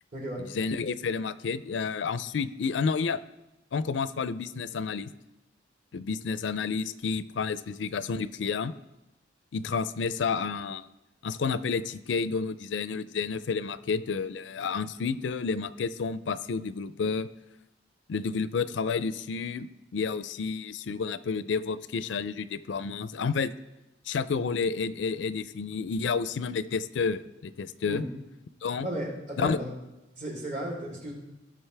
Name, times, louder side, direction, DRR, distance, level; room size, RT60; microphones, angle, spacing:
voice 1, 0.4-3.2 3.7-5.1 5.9-8.7 9.5-10.9 11.2-17.3 18.1-19.7 19.9-23.5 24.1-28.0 28.6-28.9 29.4-29.6, left 5 dB, 85° left, 15 dB, 0.4 m, -30 dB
voice 2, 28.8-29.7 30.2-31.1, right 1 dB, 45° right, -3 dB, 3.4 m, -34 dB
17.5 x 6.0 x 3.4 m, 0.98 s
head